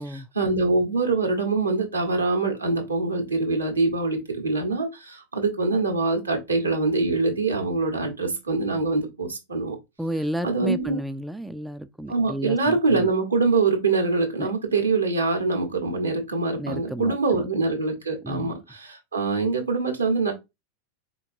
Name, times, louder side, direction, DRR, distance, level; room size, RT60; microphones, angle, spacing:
voice 1, 0.0-9.8 10.4-11.0 12.1-20.3, right 3 dB, 80° right, 1.4 m, -24 dB
voice 2, 10.0-13.1 14.4-14.5 16.6-17.5 18.2-18.6, equal, 5° right, 0.3 m, -32 dB
4.4 x 3.8 x 2.6 m
figure-of-eight pair, 90°, 0 cm